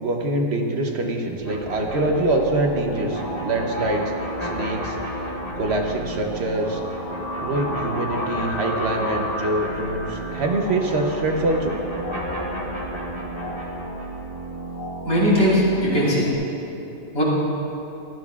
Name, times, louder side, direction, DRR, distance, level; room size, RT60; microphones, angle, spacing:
voice 1, 0.0-4.1 4.4-5.0 5.5-6.8 7.4-11.7, right 2 dB, 55° right, 2 dB, 1.0 m, -24 dB
sound 1, 1.4-16.3, equal, 45° left, 1.0 m, -32 dB
sound 2, 1.4-10.3 10.6-14.3, left 1 dB, 20° left, 1.4 m, -35 dB
voice 2, 15.1-16.3 17.1-17.2, equal, 85° left, -7 dB, 3.5 m, -19 dB
15.5 x 12.0 x 2.4 m, 2.8 s
omnidirectional pair, 1.4 m